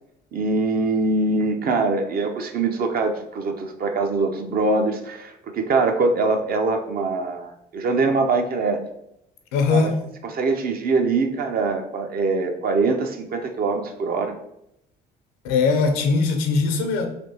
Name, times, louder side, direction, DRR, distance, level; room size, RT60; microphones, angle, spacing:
voice 1, 0.3-8.8 9.7-9.9 10.2-14.3, right 3 dB, 50° right, 5 dB, 0.6 m, -23 dB
voice 2, 9.5-10.0 15.4-17.1, left 4 dB, 85° left, 5 dB, 0.6 m, -20 dB
3.4 x 3.0 x 2.8 m, 0.81 s
hypercardioid pair, 60°, 20 cm